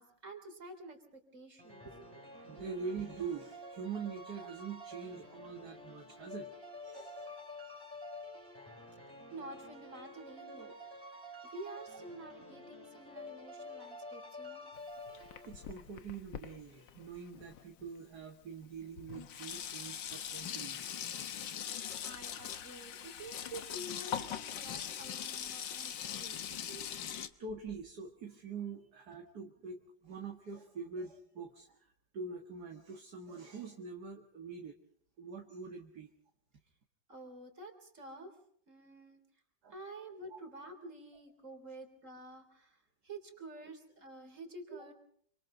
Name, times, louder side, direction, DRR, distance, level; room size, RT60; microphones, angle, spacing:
voice 1, 0.0-2.2 9.3-10.7 11.4-14.7 21.5-26.9 27.2-27.3 37.1-38.3 38.7-39.2 39.7-42.8 43.0-44.9, right 2 dB, 40° right, 6 dB, 3.9 m, -49 dB
sound 1, 1.6-15.9, left 1 dB, 10° right, 6.1 m, -49 dB
voice 2, 2.4-6.5 6.8-7.4 15.1-15.2 15.4-20.9 21.9-22.1 24.0-24.1 27.4-34.8 35.2-36.1 39.6-39.8 40.3-40.4, right 5 dB, 55° right, 2 dB, 2.4 m, -44 dB
Sink (filling or washing), 14.7-17.9 18.6-18.7 19.0-27.3, left 9 dB, 75° left, 1.8 m, -42 dB
27.5 x 26.0 x 3.9 m, 0.62 s
omnidirectional pair, 2.1 m